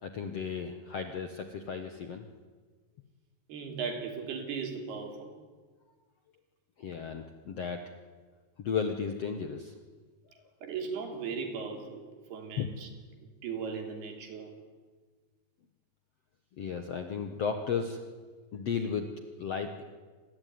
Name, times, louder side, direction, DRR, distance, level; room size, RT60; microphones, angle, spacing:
voice 1, 0.0-2.2 6.8-7.8 8.6-9.7 12.6-12.7 16.6-18.0 18.5-19.1 19.4-19.8, left 6 dB, 60° left, 7 dB, 1.7 m, -34 dB
voice 2, 3.5-5.4 10.6-12.9 13.2-14.6, right 5 dB, 75° right, 5 dB, 5.1 m, -37 dB
27.0 x 20.0 x 9.5 m, 1.4 s
omnidirectional pair, 4.7 m